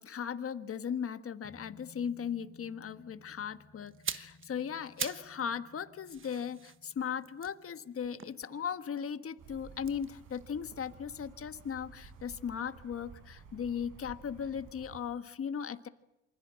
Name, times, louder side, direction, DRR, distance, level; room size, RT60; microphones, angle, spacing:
voice 1, 0.0-15.9, left 7 dB, 50° left, 10 dB, 1.5 m, -37 dB
sound 1, 1.4-10.6 10.9-11.0, left 3 dB, 20° left, 4.6 m, -60 dB
sound 2, 3.9-5.4 5.7-8.9 9.8-11.8 12.1-12.3, right 7 dB, 40° right, 1.2 m, -44 dB
sound 3, 9.4-15.0, right 4 dB, 85° right, 6.4 m, -53 dB
28.0 x 25.0 x 7.7 m, 0.90 s
cardioid pair, 90°, 30 cm